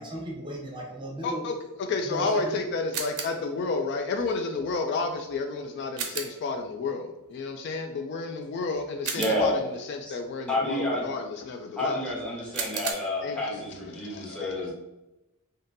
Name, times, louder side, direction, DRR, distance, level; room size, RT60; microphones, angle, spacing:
voice 1, 0.0-1.5 2.0-2.6 12.6-12.7, right 1 dB, 20° right, -1 dB, 0.7 m, -36 dB
voice 2, 1.2-12.0 12.5-12.9 13.2-13.6 13.9-14.7, left 3 dB, 50° left, 4 dB, 0.3 m, -31 dB
sound 1, 2.9-3.5 6.0-6.5 9.0-9.7 12.5-12.9, right 6 dB, 75° right, 0.5 m, -34 dB
voice 3, 9.1-9.6 10.1-10.2 10.5-11.1 11.8-14.7, left 1 dB, 5° left, -4 dB, 0.9 m, -29 dB
3.6 x 2.7 x 2.6 m, 0.98 s
head